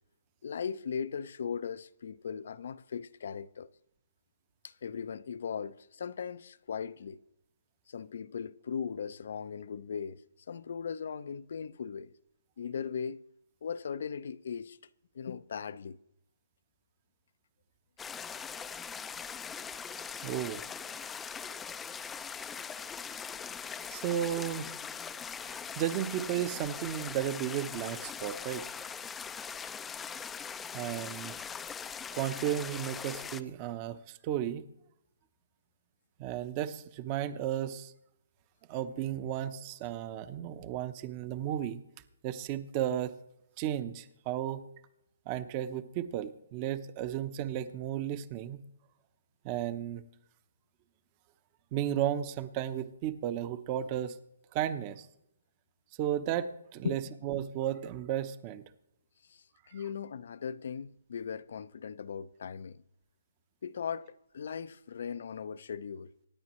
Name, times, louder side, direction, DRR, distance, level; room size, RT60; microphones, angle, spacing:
voice 1, 0.4-3.7 4.6-7.2 7.9-10.2 10.5-12.1 12.6-13.2 13.6-14.8 15.1-16.0 56.8-57.1 59.3-62.8 63.6-66.1, left 7 dB, 60° left, 0.6 m, -38 dB
sound 1, 18.0-33.4, left 6 dB, 10° left, 0.5 m, -41 dB
voice 2, 20.2-20.6 23.9-24.7 25.4-28.7 30.7-31.4 32.1-34.6 36.2-37.9 38.7-41.8 42.2-43.1 43.6-44.6 45.3-48.6 49.4-50.0 51.7-54.2 54.5-55.1 56.0-58.6, right 11 dB, 25° right, 0.8 m, -34 dB
26.0 x 9.5 x 3.1 m
hypercardioid pair, 155°, 0 cm